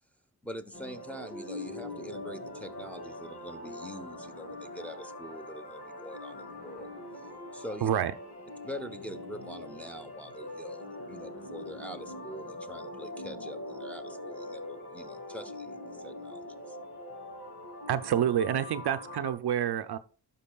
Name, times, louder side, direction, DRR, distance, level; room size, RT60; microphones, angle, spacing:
voice 1, 0.4-6.9 7.5-7.9 8.6-16.8, equal, 5° left, 0.9 m, -44 dB
sound 1, 0.7-19.3, left 1 dB, 90° left, 2.7 m, -42 dB
voice 2, 7.8-8.1 17.9-20.0, right 9 dB, 75° right, 0.5 m, -28 dB
12.0 x 5.4 x 2.3 m
cardioid pair, 60°, 40 cm